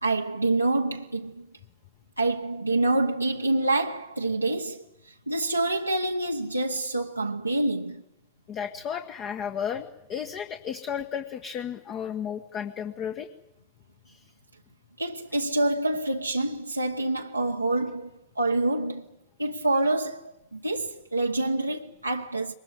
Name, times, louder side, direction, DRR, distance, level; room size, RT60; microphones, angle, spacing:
voice 1, 0.0-1.5 2.2-4.8 5.3-8.0 15.0-19.0 19.4-22.6, right 2 dB, 85° right, 1.0 m, -27 dB
voice 2, 8.5-13.3 14.1-14.2, left 8 dB, 35° left, 1.4 m, -33 dB
23.0 x 20.5 x 9.5 m
figure-of-eight pair, 90°, 0 cm